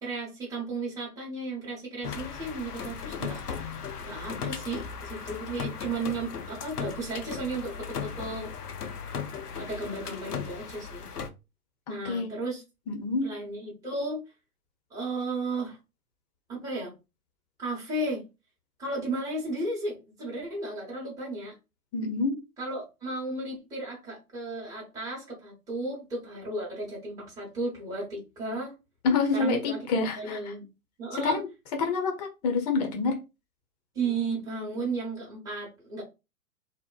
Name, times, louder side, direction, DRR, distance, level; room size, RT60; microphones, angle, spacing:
voice 1, 0.0-3.4 4.0-8.5 9.6-11.1 11.9-12.6 13.2-14.2 14.9-15.8 16.5-16.9 17.6-18.2 18.8-21.6 22.6-28.7 29.3-29.8 30.2-30.6 31.0-31.4 33.9-36.0, right 2 dB, 10° right, -5 dB, 0.8 m, -34 dB
sound 1, 2.0-11.3, left 6 dB, 90° left, 0.5 m, -37 dB
voice 2, 12.9-13.3 21.9-22.4 29.0-30.5 31.1-31.5 31.8-33.2, left 4 dB, 30° left, 3 dB, 0.6 m, -27 dB
2.8 x 2.0 x 2.2 m, 0.26 s
figure-of-eight pair, 115°, 45 cm